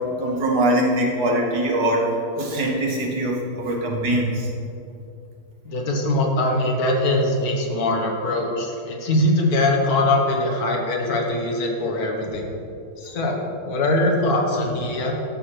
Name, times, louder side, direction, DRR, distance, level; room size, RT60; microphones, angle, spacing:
voice 1, 0.2-4.5, right 1 dB, 75° right, -1 dB, 1.8 m, -22 dB
voice 2, 5.6-12.4 13.0-15.1, left 1 dB, 70° left, 1 dB, 1.5 m, -22 dB
12.0 x 6.4 x 3.0 m, 2.6 s
omnidirectional pair, 1.7 m